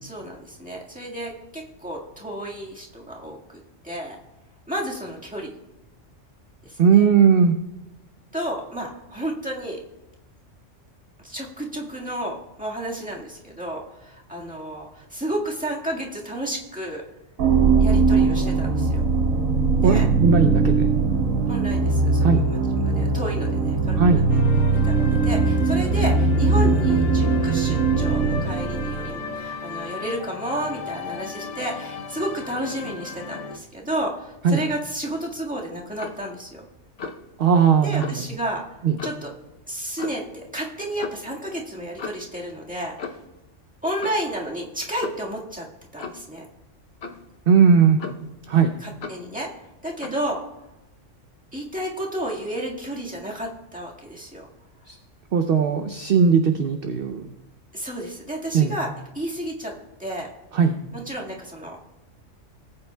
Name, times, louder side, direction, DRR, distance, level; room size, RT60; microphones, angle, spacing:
voice 1, 0.0-3.4 3.8-4.2 4.7-5.5 6.6-7.1 8.3-9.8 11.2-17.0 17.8-19.0 19.8-20.1 21.5-36.7 37.8-38.6 39.0-39.3 39.7-40.2 40.5-43.2 43.8-45.7 45.9-46.4 48.8-49.5 49.8-50.4 51.5-54.5 57.7-59.7 60.0-60.3 60.9-61.8, right 1 dB, 5° right, -3 dB, 1.7 m, -32 dB
voice 2, 6.8-7.5 19.8-20.9 22.2-22.4 23.9-24.2 34.4-34.6 37.4-38.2 38.8-38.9 47.5-48.0 48.5-48.7 54.9-55.0 55.3-57.3 58.5-58.8 60.5-60.8, right 6 dB, 55° right, 7 dB, 0.7 m, -18 dB
sound 1, 17.4-29.3, right 4 dB, 80° right, 1.3 m, -20 dB
sound 2, 24.3-33.6, left 5 dB, 80° left, 1.2 m, -35 dB
Clock, 36.0-36.3 37.0-37.3 38.0-38.2 39.0-39.3 40.0-40.3 41.0-41.2 42.0-42.3 43.0-43.3 44.0-44.3 45.0-45.3 46.0-46.3 47.0-47.3 48.0-48.4 49.0-49.3 50.0-50.2, left 5 dB, 60° left, 1.0 m, -36 dB
18.5 x 8.7 x 2.3 m, 0.97 s
omnidirectional pair, 1.3 m